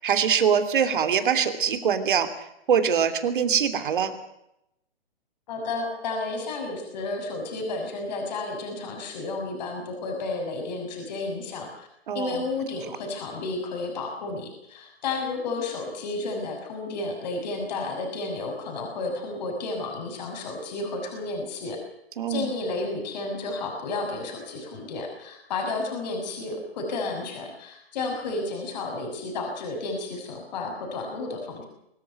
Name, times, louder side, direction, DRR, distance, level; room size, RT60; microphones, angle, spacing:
voice 1, 0.0-2.3 2.7-4.1 12.1-12.4 22.2-22.5, right 7 dB, 55° right, 10 dB, 3.0 m, -23 dB
voice 2, 5.5-11.9 12.1-21.8 22.3-31.6, left 3 dB, 45° left, 2 dB, 6.5 m, -32 dB
24.0 x 14.0 x 9.6 m, 0.81 s
figure-of-eight pair, 135°, 31 cm